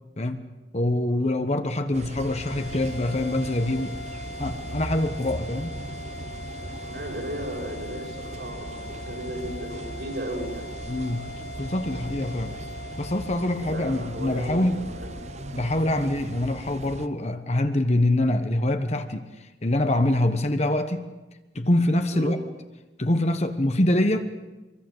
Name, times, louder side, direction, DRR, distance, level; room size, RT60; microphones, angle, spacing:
voice 1, 0.7-4.0 4.4-5.7 10.9-11.3 11.6-12.5 13.0-14.9 15.5-21.1 21.5-22.4 23.0-24.3, left 1 dB, 40° left, 8 dB, 1.3 m, -25 dB
sound 1, 1.9-17.1, right 2 dB, 40° right, 0.9 m, -38 dB
sound 2, 2.3-16.9, left 2 dB, 75° left, 1.2 m, -42 dB
voice 2, 6.8-10.7 12.3-12.4 13.4-15.1 22.1-22.4, equal, 70° right, -1 dB, 7.3 m, -35 dB
24.5 x 23.5 x 8.0 m, 1.1 s
head